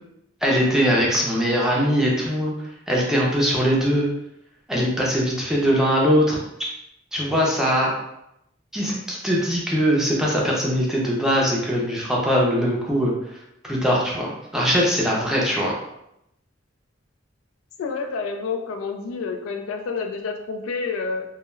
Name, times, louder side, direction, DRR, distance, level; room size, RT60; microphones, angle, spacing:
voice 1, 0.4-2.5 2.9-4.1 4.7-6.4 7.1-7.9 8.7-13.1 13.6-15.7, equal, 5° right, -4 dB, 0.5 m, -21 dB
voice 2, 17.8-21.2, left 4 dB, 85° left, 4 dB, 0.3 m, -29 dB
2.2 x 2.2 x 3.0 m, 0.82 s
head